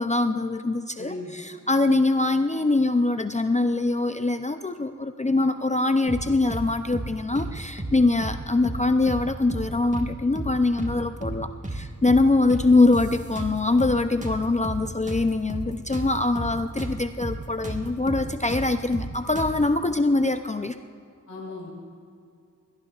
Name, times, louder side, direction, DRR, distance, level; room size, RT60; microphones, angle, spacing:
voice 1, 0.0-20.8, left 2 dB, 25° left, 8 dB, 0.5 m, -23 dB
voice 2, 1.0-1.5 21.3-21.7, left 2 dB, 70° left, -4 dB, 3.4 m, -37 dB
sound 1, 6.1-6.7 6.9-7.1 7.3-8.4 8.6-8.8 9.1-10.1 10.3-10.5 10.8-11.8 12.1-12.2 12.5-13.9 14.2-16.9 17.2-17.4 17.6-19.7, right 1 dB, 25° right, 1.5 m, -33 dB
21.5 x 18.0 x 2.4 m, 2.4 s
wide cardioid pair, 75°, 30 cm